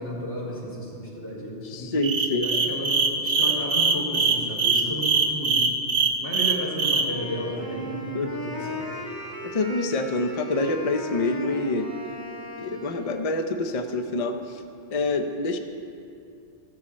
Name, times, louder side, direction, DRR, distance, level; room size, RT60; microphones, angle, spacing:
voice 1, 0.0-1.9 2.3-5.6 6.2-8.9, equal, 85° left, -6 dB, 3.4 m, -33 dB
voice 2, 1.6-2.5 8.1-8.3 9.4-11.9 12.6-14.6 14.9-15.6, left 2 dB, 35° left, 6 dB, 0.7 m, -26 dB
sound 1, 2.0-7.0, right 4 dB, 65° right, 1.3 m, -22 dB
Wind instrument woodwind instrument, 7.1-13.3, equal, 20° left, 2.1 m, -37 dB
14.0 x 13.5 x 4.3 m, 2.5 s
omnidirectional pair, 1.1 m